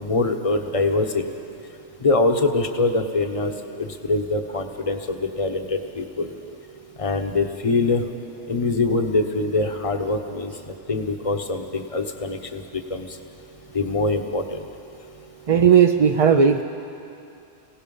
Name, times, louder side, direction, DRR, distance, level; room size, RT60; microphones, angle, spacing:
voice 1, 0.0-1.3 2.0-3.5 3.8-6.3 7.0-8.0 8.5-13.2 13.7-14.6, left 3 dB, 30° left, 5 dB, 1.1 m, -24 dB
voice 2, 15.5-16.6, right 7 dB, 40° right, 5 dB, 0.5 m, -15 dB
27.5 x 17.5 x 5.5 m, 2.6 s
omnidirectional pair, 1.2 m